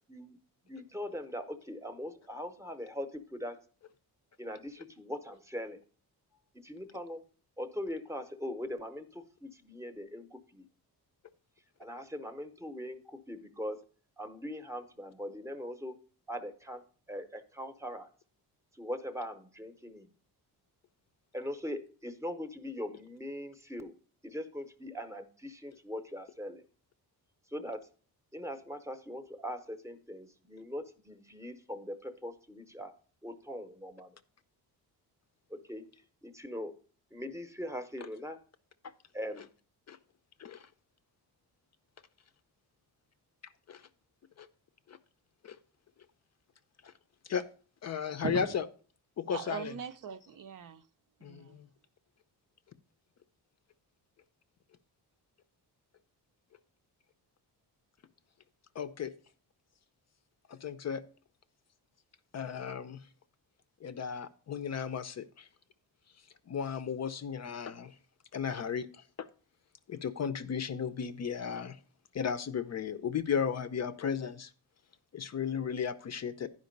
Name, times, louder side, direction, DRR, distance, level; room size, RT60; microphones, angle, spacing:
voice 1, 0.7-3.6 4.4-5.8 6.6-7.2 7.6-10.6 11.8-13.8 14.2-16.0 16.3-16.8 17.1-18.1 18.7-20.1 21.3-23.9 24.2-26.6 27.5-27.9 28.3-32.9 33.2-34.2 35.5-35.8 36.2-36.7 37.1-38.4 39.1-39.5, equal, 5° right, 0.8 m, -41 dB
voice 2, 47.8-48.7 49.2-49.7 51.2-51.7 58.8-59.1 60.5-61.0 62.3-63.0 63.8-65.5 66.5-67.9 68.3-69.3 69.9-71.8 72.1-74.5 75.1-76.5, left 7 dB, 40° left, 0.5 m, -35 dB
voice 3, 49.3-50.8 51.2-51.6, right 8 dB, 55° right, 0.6 m, -39 dB
10.5 x 5.2 x 5.2 m
wide cardioid pair, 150°, 40 cm